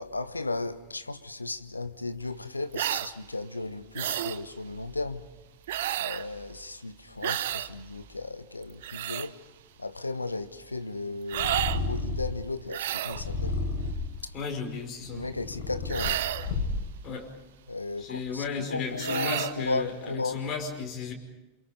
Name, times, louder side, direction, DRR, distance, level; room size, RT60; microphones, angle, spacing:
voice 1, 0.0-5.3 5.9-9.4 9.8-13.6 14.2-14.3 15.1-16.3 17.7-18.4 18.7-20.4, left 3 dB, 80° left, 1.1 m, -35 dB
sound 1, 2.7-3.1 3.9-4.4 5.7-6.3 7.2-7.7 8.6-9.3 11.3-11.8 12.7-13.2 15.9-16.5 19.0-19.6, right 13 dB, 55° right, 0.9 m, -31 dB
Purr, 11.3-12.4 13.1-14.2 14.9-17.0, left 3 dB, 50° left, 5.0 m, -31 dB
voice 2, 14.3-15.3 17.0-17.3 18.0-21.1, left 5 dB, 30° left, 5.4 m, -34 dB
28.0 x 27.5 x 5.3 m
figure-of-eight pair, 90°, 0 cm